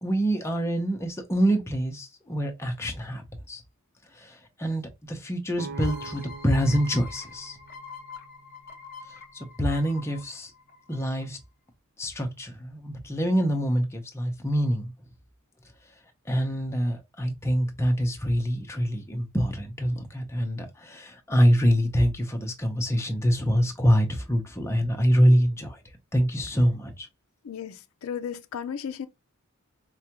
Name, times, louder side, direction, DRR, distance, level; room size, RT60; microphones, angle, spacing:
voice 1, 0.0-3.6 4.1-7.6 9.3-10.5 10.9-11.4 12.0-14.9 16.3-25.8 26.1-27.1, equal, 15° left, 0.6 m, -25 dB
sound 1, 5.6-9.4, right 5 dB, 55° right, 0.4 m, -45 dB
sound 2, 5.7-11.2, left 4 dB, 45° left, 0.8 m, -45 dB
voice 2, 27.4-29.1, left 7 dB, 80° left, 0.4 m, -35 dB
4.7 x 2.2 x 2.8 m
head